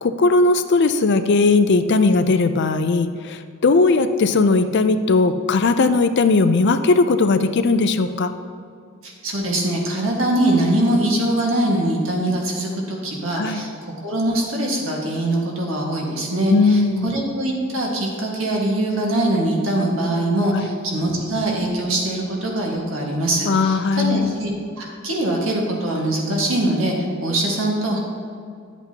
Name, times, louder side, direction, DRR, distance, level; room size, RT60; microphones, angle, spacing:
voice 1, 0.0-8.3 13.4-13.6 16.5-17.1 20.5-20.7 23.5-24.3, left 3 dB, 55° left, 9 dB, 0.5 m, -18 dB
voice 2, 9.0-24.5 24.8-28.0, right 1 dB, 65° right, -2 dB, 1.7 m, -22 dB
11.5 x 8.1 x 2.9 m, 2.3 s
head